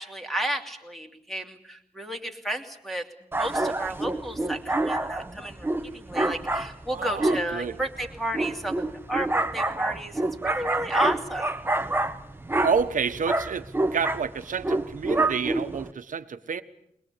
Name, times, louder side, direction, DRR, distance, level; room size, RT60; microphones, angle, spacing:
voice 1, 0.0-3.1 3.3-5.7 5.9-11.6, right 1 dB, ahead, 3 dB, 2.7 m, -32 dB
sound 1, 3.3-15.9, right 2 dB, 15° right, 1.1 m, -28 dB
voice 2, 6.9-7.8 12.6-13.6 13.9-16.6, right 6 dB, 70° right, 10 dB, 1.3 m, -29 dB
21.5 x 21.0 x 8.4 m, 0.75 s
wide cardioid pair, 125°, 14 cm